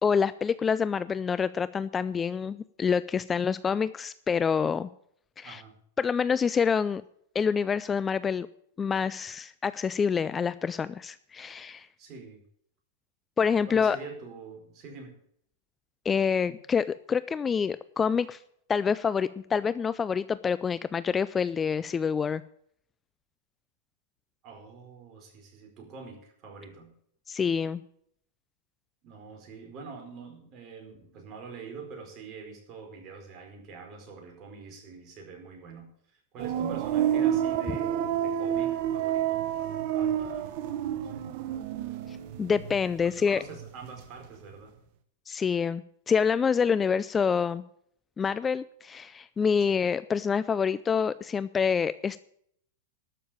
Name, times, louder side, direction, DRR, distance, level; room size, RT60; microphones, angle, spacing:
voice 1, 0.0-4.9 5.4-5.6 6.0-7.0 7.3-8.5 8.8-11.9 13.4-14.0 16.0-18.4 18.7-22.4 27.3-27.8 42.4-43.4 45.3-47.6 48.2-52.2, left 6 dB, 20° left, 16 dB, 0.4 m, -27 dB
voice 2, 5.4-5.8 12.0-12.4 13.7-15.2 24.4-26.9 29.0-39.5 39.9-40.6 40.9-41.3 43.0-44.8 49.7-49.8, right 5 dB, 35° right, 2 dB, 4.7 m, -45 dB
sound 1, 36.4-43.3 43.5-44.3, right 10 dB, 55° right, 1.2 m, -29 dB
12.5 x 6.7 x 8.8 m, 0.67 s
hypercardioid pair, 120°, 0 cm